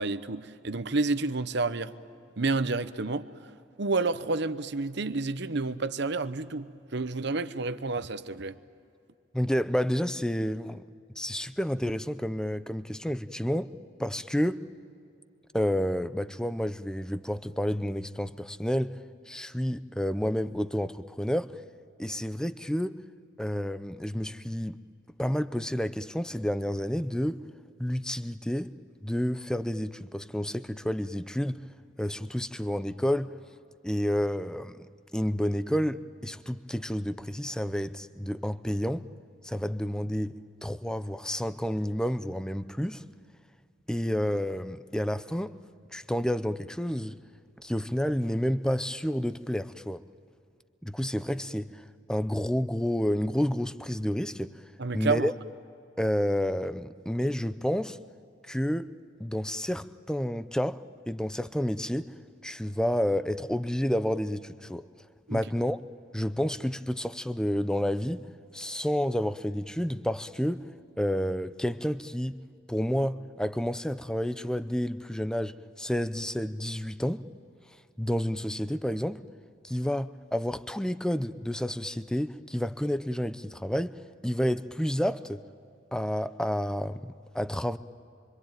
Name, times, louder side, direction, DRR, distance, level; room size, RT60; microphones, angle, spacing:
voice 1, 0.0-1.9 2.4-3.3 3.8-8.6 54.8-55.3 65.3-65.4, right 3 dB, 60° right, 0.9 m, -29 dB
voice 2, 9.3-10.8 11.2-13.7 14.0-14.6 15.5-19.0 19.3-21.5 22.0-23.0 23.4-24.8 25.2-27.4 27.8-28.7 29.0-31.6 32.0-33.3 33.8-39.1 39.4-40.4 40.6-43.0 43.9-45.5 45.9-47.2 47.6-50.0 50.8-54.5 54.9-55.3 56.0-58.0 58.5-58.9 59.2-62.1 62.4-64.9 65.3-65.8 66.1-68.2 68.5-70.6 71.0-72.4 72.7-77.2 78.0-79.2 79.6-84.0 84.2-85.4 85.9-87.8, equal, 5° left, 0.6 m, -30 dB
26.0 x 25.5 x 9.1 m
head